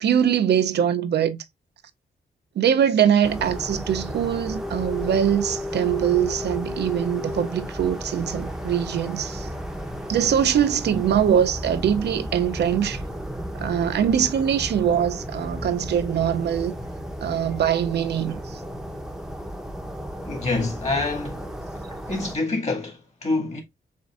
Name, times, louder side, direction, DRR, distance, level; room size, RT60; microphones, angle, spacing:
voice 1, 0.0-1.4 2.6-9.5 10.1-13.0 13.6-16.8 17.2-18.6, right 9 dB, 75° right, 0.5 m, -22 dB
sound 1, 3.2-22.4, equal, 5° right, 0.7 m, -33 dB
voice 2, 20.3-21.5 22.1-23.6, left 3 dB, 40° left, 2.0 m, -26 dB
7.1 x 2.5 x 2.4 m
cardioid pair, 100°, 18 cm